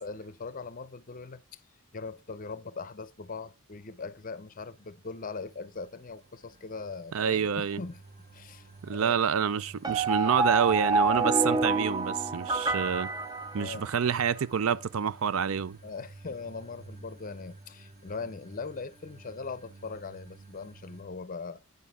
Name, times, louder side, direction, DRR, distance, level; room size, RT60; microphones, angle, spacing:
voice 1, 0.0-1.6 1.9-8.0 8.3-9.3 13.6-13.8 15.8-21.6, left 4 dB, 40° left, 0.6 m, -40 dB
sound 1, 4.7-21.0, right 3 dB, 40° right, 1.4 m, -52 dB
voice 2, 7.1-7.8 8.8-13.1 13.5-15.8, right 7 dB, 70° right, 0.5 m, -27 dB
sound 2, 9.8-14.1, right 3 dB, 20° right, 0.5 m, -28 dB
9.5 x 6.3 x 3.5 m
head